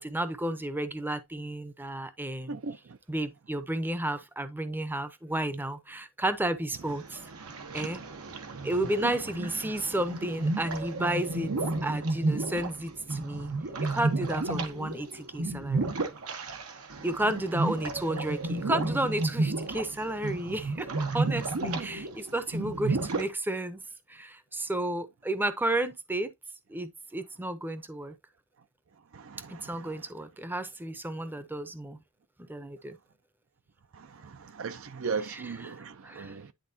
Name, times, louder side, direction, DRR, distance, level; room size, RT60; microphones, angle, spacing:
voice 1, 0.0-2.6 3.1-7.2 7.7-8.0 8.6-11.5 11.8-13.5 13.8-15.8 17.0-20.9 21.1-23.8 24.1-26.3 26.7-28.1 29.5-32.0 32.5-33.0 35.3-35.8 36.0-36.4, right 1 dB, 10° right, 0.6 m, -32 dB
sound 1, 6.8-23.3, right 2 dB, 80° right, 1.1 m, -32 dB
voice 2, 29.1-30.0 33.9-36.5, right 5 dB, 65° right, 0.6 m, -38 dB
10.5 x 3.6 x 2.7 m
head